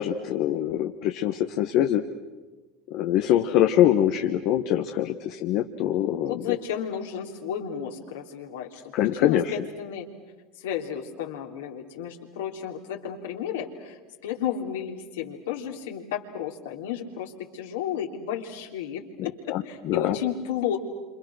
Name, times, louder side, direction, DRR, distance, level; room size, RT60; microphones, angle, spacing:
voice 1, 0.0-2.0 2.9-6.6 8.9-9.6 19.2-20.2, left 11 dB, 60° left, 5 dB, 1.3 m, -24 dB
voice 2, 6.2-8.9 9.2-10.1 10.6-20.8, left 9 dB, 80° left, 1 dB, 3.3 m, -33 dB
29.5 x 27.0 x 6.4 m, 1.3 s
hypercardioid pair, 80°, 0 cm